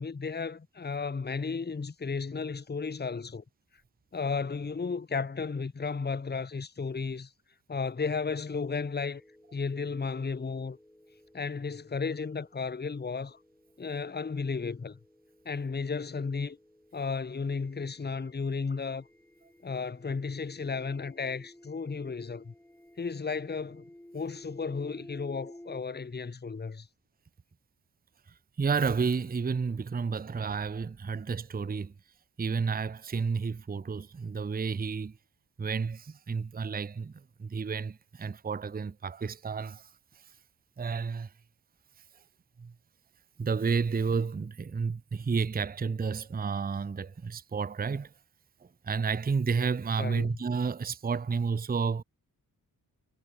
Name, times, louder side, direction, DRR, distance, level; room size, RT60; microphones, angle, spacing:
voice 1, 0.0-3.4 4.1-7.3 7.7-9.2 9.5-10.8 11.3-13.4 13.8-15.0 15.4-16.6 16.9-19.1 19.6-22.5 23.0-23.9 24.1-26.9 50.0-50.3, left 5 dB, 25° left, 1.1 m, -34 dB
sound 1, 8.8-25.8, left 1 dB, 5° left, 1.7 m, -55 dB
voice 2, 28.6-31.9 32.4-35.2 35.6-39.9 40.8-41.3 42.6-42.7 43.4-48.1 48.6-52.0, right 5 dB, 25° right, 0.6 m, -31 dB
wide cardioid pair, 155°, 37 cm